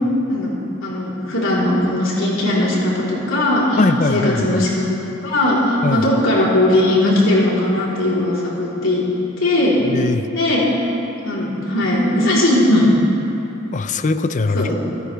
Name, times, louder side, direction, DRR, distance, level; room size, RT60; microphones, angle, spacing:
voice 1, 0.8-4.8 5.2-9.0 9.4-9.8 10.3-10.6 11.2-12.9 14.5-14.7, left 1 dB, 80° left, -6 dB, 3.8 m, -18 dB
voice 2, 3.8-4.6 5.8-6.0 9.9-10.2 13.7-14.7, left 3 dB, 40° left, 11 dB, 0.5 m, -20 dB
28.5 x 9.8 x 3.4 m, 2.8 s
head